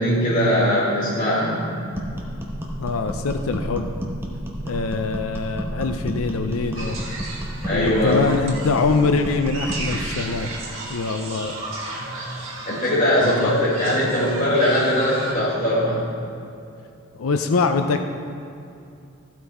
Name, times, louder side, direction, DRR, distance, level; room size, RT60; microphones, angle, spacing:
voice 1, 0.0-1.6 7.6-8.2 12.0-12.1 12.7-16.0, left 1 dB, 40° left, -8 dB, 1.8 m, -20 dB
sound 1, 1.9-10.1, equal, 10° right, 1.1 m, -31 dB
voice 2, 2.8-3.9 4.6-7.0 7.7-10.5 10.9-11.6 13.2-13.6 17.2-18.0, left 4 dB, 80° left, 7 dB, 0.5 m, -23 dB
sound 2, 6.7-15.3, right 2 dB, 70° right, 1.9 m, -35 dB
14.5 x 6.0 x 4.2 m, 2.5 s
head